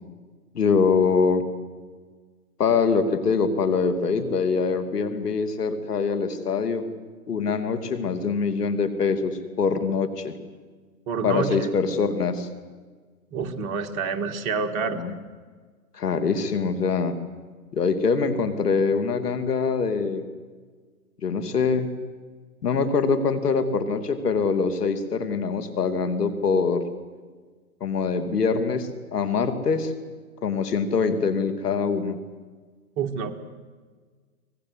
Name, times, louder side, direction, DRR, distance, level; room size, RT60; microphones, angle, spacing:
voice 1, 0.5-1.5 2.6-6.8 7.3-10.3 11.2-12.5 15.0-15.1 15.9-17.2 17.7-20.2 21.2-21.9 22.6-26.8 27.8-29.9 30.4-32.2, left 5 dB, 80° left, 10 dB, 2.8 m, -24 dB
voice 2, 11.1-11.7 13.3-15.0 33.0-33.4, right 5 dB, 30° right, 5 dB, 1.7 m, -28 dB
24.0 x 19.0 x 8.1 m, 1.5 s
hypercardioid pair, 135°, 46 cm